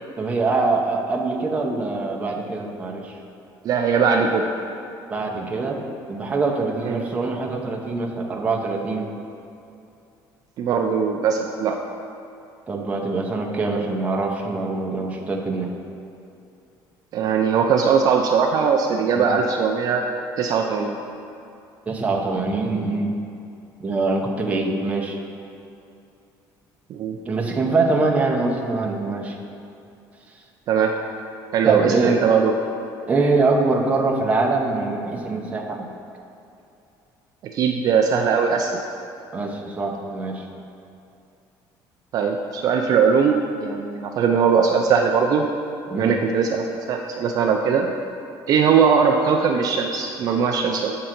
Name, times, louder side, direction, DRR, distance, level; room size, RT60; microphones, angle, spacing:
voice 1, 0.2-3.2 5.1-9.1 12.7-15.7 19.2-19.3 21.9-23.2 23.8-25.2 27.2-29.4 31.6-32.2 33.1-35.9 39.3-40.4 45.9-46.2, right 3 dB, 15° right, 0 dB, 0.7 m, -24 dB
voice 2, 3.6-4.4 6.8-7.0 10.6-11.8 17.1-20.0 20.4-21.0 26.9-27.2 30.7-30.9 31.5-32.5 37.5-38.7 42.1-45.5 46.0-47.9 48.5-51.0, right 6 dB, 45° right, 3 dB, 0.4 m, -20 dB
7.8 x 3.8 x 5.8 m, 2.6 s
cardioid pair, 150°, 8 cm